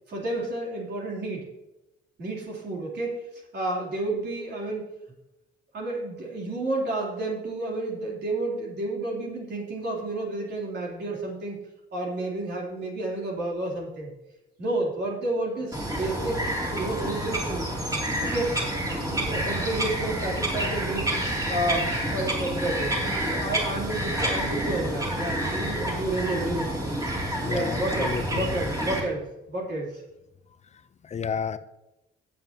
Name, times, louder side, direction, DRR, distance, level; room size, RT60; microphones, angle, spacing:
voice 1, 0.1-1.4 2.2-3.2 3.5-4.9 5.7-11.6 11.9-14.1 14.6-17.7 18.2-18.6 18.9-21.1 21.5-22.9 23.2-27.0 27.5-30.0, right 2 dB, 60° right, -3 dB, 3.4 m, -31 dB
Bird vocalization bird call bird song, 15.7-29.0, right 1 dB, 15° right, 2.9 m, -28 dB
voice 2, 27.4-28.5 31.0-31.6, left 6 dB, 35° left, 12 dB, 0.6 m, -31 dB
16.0 x 7.3 x 2.9 m, 0.94 s
cardioid pair, 90°, 20 cm